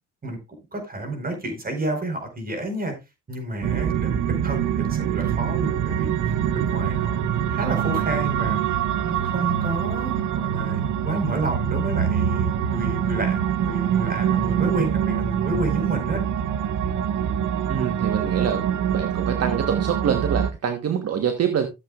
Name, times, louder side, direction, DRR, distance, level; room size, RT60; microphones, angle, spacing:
voice 1, 0.7-2.9 3.3-8.6 9.0-16.2, right 2 dB, 30° right, 5 dB, 4.6 m, -30 dB
sound 1, 3.6-20.5, right 9 dB, 80° right, 0.9 m, -24 dB
voice 2, 17.7-18.6 18.9-21.7, right 7 dB, 55° right, 7 dB, 1.3 m, -25 dB
14.5 x 7.5 x 2.4 m, 0.24 s
cardioid pair, 90°, 30 cm